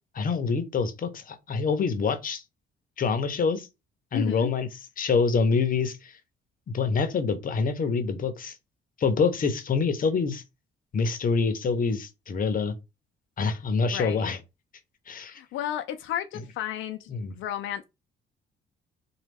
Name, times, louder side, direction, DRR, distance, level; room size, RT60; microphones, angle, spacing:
voice 1, 0.1-2.4 3.0-3.7 4.1-4.7 5.0-5.9 6.7-8.5 9.0-10.4 10.9-12.7 13.4-14.4 15.1-15.4 17.1-17.3, left 5 dB, 45° left, 0.7 m, -26 dB
voice 2, 4.1-4.5 13.9-14.3 15.3-17.8, left 11 dB, 80° left, 0.4 m, -33 dB
3.1 x 2.2 x 3.3 m
cardioid pair, 90°, 20 cm